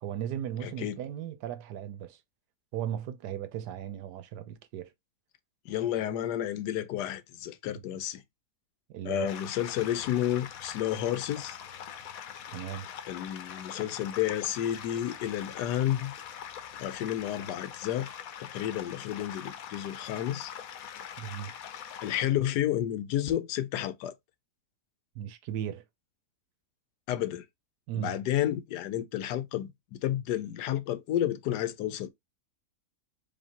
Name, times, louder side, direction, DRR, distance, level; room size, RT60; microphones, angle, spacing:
voice 1, 0.0-2.2 2.7-4.9 7.9-8.0 8.9-9.4 12.5-12.9 21.2-21.5 25.1-25.8 27.9-28.2, right 10 dB, 85° right, 1.3 m, -36 dB
voice 2, 0.6-1.0 5.7-8.2 9.0-11.6 13.1-16.1 16.8-18.1 18.4-20.5 22.0-24.1 27.1-27.4 27.9-32.1, left 12 dB, 90° left, 1.2 m, -31 dB
sound 1, 9.3-22.2, left 9 dB, 70° left, 1.0 m, -43 dB
5.0 x 2.8 x 2.8 m
omnidirectional pair, 1.7 m